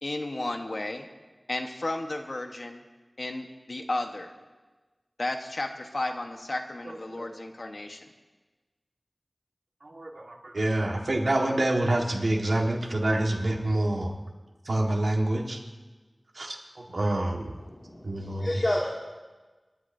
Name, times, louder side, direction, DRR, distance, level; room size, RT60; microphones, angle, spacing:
voice 1, 0.0-1.1 1.5-2.8 3.2-4.3 5.2-8.1, left 2 dB, 70° left, 4 dB, 1.2 m, -33 dB
voice 2, 9.8-14.1 14.7-15.6 16.4-17.5 18.0-18.5, right 1 dB, 80° right, 1 dB, 1.6 m, -27 dB
voice 3, 17.6-18.9, left 1 dB, 50° left, -4 dB, 2.3 m, -30 dB
28.0 x 11.0 x 2.7 m, 1.2 s
wide cardioid pair, 45°, 0 cm